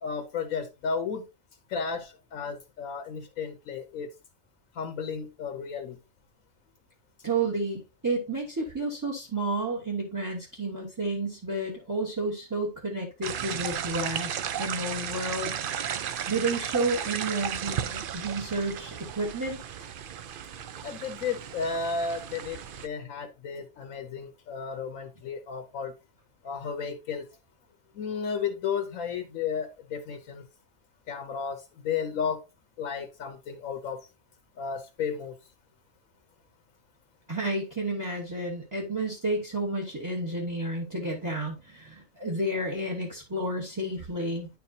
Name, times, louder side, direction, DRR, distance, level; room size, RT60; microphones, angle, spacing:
voice 1, 0.0-1.3 1.7-4.1 4.7-6.0 20.8-25.9 26.4-27.3 27.9-30.5 31.1-32.4 32.8-34.1 34.6-35.4, left 6 dB, 85° left, 1.1 m, -33 dB
voice 2, 7.2-15.5 16.3-19.6 37.3-44.5, right 2 dB, 15° right, 1.1 m, -31 dB
sound 1, 13.2-22.9, right 9 dB, 60° right, 0.6 m, -34 dB
10.0 x 4.7 x 2.6 m
omnidirectional pair, 1.4 m